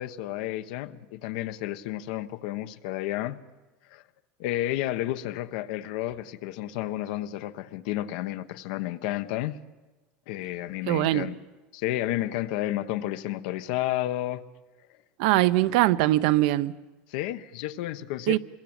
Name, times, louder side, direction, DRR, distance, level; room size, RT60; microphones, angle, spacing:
voice 1, 0.0-3.4 3.9-4.0 4.4-9.6 10.3-11.4 11.7-14.4 17.1-18.4, left 14 dB, 80° left, 1.1 m, -31 dB
voice 2, 10.9-11.3 15.2-16.7 18.3-18.4, right 16 dB, 75° right, 0.8 m, -22 dB
26.0 x 22.0 x 8.9 m
cardioid pair, 165°, 4 cm